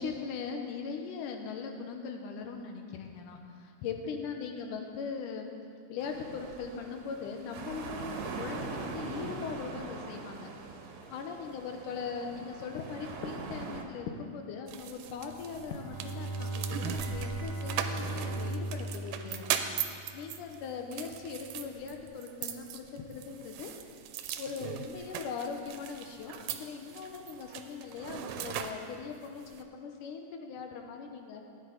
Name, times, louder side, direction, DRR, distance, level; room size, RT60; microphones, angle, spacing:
voice 1, 0.0-5.5 5.9-10.5 11.1-19.6 20.1-23.7 24.4-31.4, left 5 dB, 85° left, 4 dB, 2.5 m, -40 dB
sound 1, 6.0-13.8, right 4 dB, 65° right, 1.9 m, -42 dB
sound 2, 14.7-29.6, right 9 dB, 85° right, 2.1 m, -40 dB
Bowed string instrument, 15.3-20.5, right 2 dB, 40° left, 1.4 m, -38 dB
15.0 x 9.8 x 4.0 m, 2.4 s
omnidirectional pair, 3.6 m